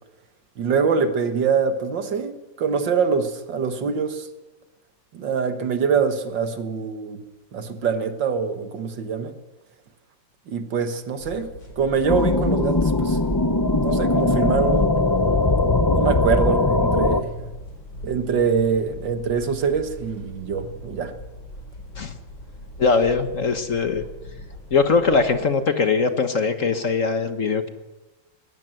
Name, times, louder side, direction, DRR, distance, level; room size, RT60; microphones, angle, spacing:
voice 1, 0.6-4.3 5.1-7.2 7.5-9.4 10.5-11.5 11.8-13.2 13.8-14.9 15.9-17.5 18.0-21.1, right 6 dB, 70° right, 9 dB, 2.2 m, -24 dB
sound 1, 11.2-25.5, equal, 65° left, 6.1 m, -40 dB
sound 2, 12.1-17.2, left 2 dB, 30° left, 0.4 m, -20 dB
voice 2, 22.8-24.0 24.7-27.7, left 4 dB, 45° left, 9 dB, 1.4 m, -21 dB
20.0 x 19.5 x 7.8 m, 1.1 s
omnidirectional pair, 2.1 m